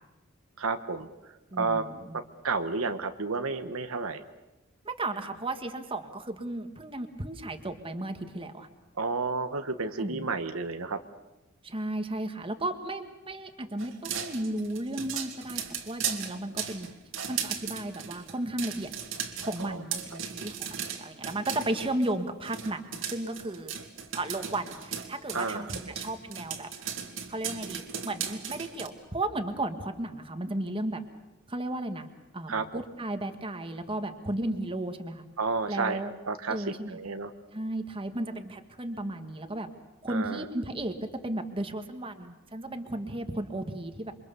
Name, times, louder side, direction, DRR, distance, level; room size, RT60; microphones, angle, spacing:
voice 1, 0.6-1.1 1.6-1.8 2.1-4.2 9.0-11.0 19.6-19.8 25.3-25.7 32.5-32.8 35.4-36.0 36.3-37.3 40.1-40.5, right 4 dB, 80° right, 8 dB, 1.3 m, -31 dB
voice 2, 1.5-2.2 4.8-8.7 10.0-10.3 11.6-16.9 17.3-18.9 19.4-23.7 24.1-26.7 27.3-31.0 31.5-32.1 32.3-35.2 35.7-36.1 36.5-37.0 37.5-39.7 40.0-44.1, right 1 dB, 25° right, 7 dB, 1.7 m, -34 dB
sound 1, 13.8-22.1 22.4-28.9, right 8 dB, 65° right, 2.3 m, -37 dB
28.0 x 24.0 x 6.9 m, 1.0 s
head